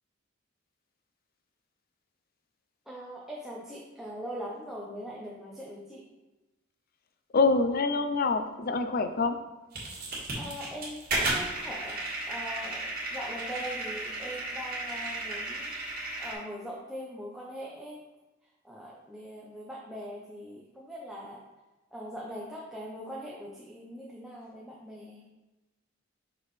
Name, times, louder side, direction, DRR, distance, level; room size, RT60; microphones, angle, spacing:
voice 1, 2.9-6.0 10.4-12.0 12.3-18.0 18.4-21.5 21.9-25.2, equal, ahead, -5 dB, 0.7 m, -41 dB
voice 2, 7.3-9.4, left 3 dB, 50° left, 8 dB, 0.5 m, -25 dB
sound 1, 9.7-16.3, right 2 dB, 50° right, 1.8 m, -34 dB
5.9 x 5.3 x 3.2 m, 1.1 s
head